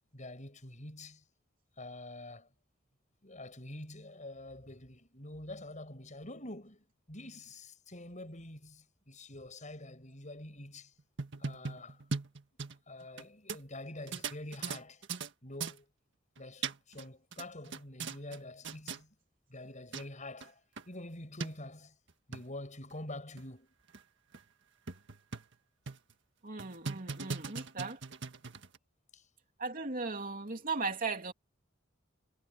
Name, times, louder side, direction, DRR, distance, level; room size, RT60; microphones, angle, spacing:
voice 1, 0.1-1.2 1.8-2.5 3.2-10.9 11.4-12.0 12.9-15.0 15.4-15.9 16.4-19.1 19.5-20.6 20.9-21.9 22.3-23.7 29.1-29.2, left 1 dB, 35° left, 7.9 m, -46 dB
sound 1, 11.0-13.2 13.5-13.6 14.1-15.3 15.6-15.8 16.4-17.1 17.3-18.4 18.6-19.0 19.7-19.8 19.9-20.1 20.4-20.5 20.8-20.9 21.4-21.5 22.1-22.4 22.9-23.0 23.4-23.5 23.9-24.0 24.3-24.4 24.9-25.5 25.9-26.1 26.6-28.8, right 4 dB, 60° right, 1.7 m, -39 dB
voice 2, 26.4-28.0 29.6-31.3, right 4 dB, 45° right, 2.9 m, -37 dB
head